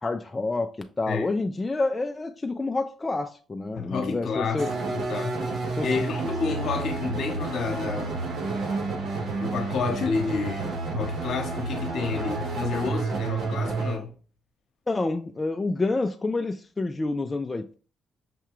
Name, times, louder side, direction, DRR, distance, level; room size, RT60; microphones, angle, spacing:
voice 1, 0.0-4.7 5.8-5.9 14.9-17.7, left 3 dB, 25° left, 0.3 m, -28 dB
voice 2, 3.7-8.2 9.4-14.1, left 4 dB, 65° left, 0.9 m, -30 dB
sound 1, 4.6-14.0, right 3 dB, 65° right, 0.9 m, -30 dB
5.7 x 2.3 x 3.0 m
cardioid pair, 90°, 0 cm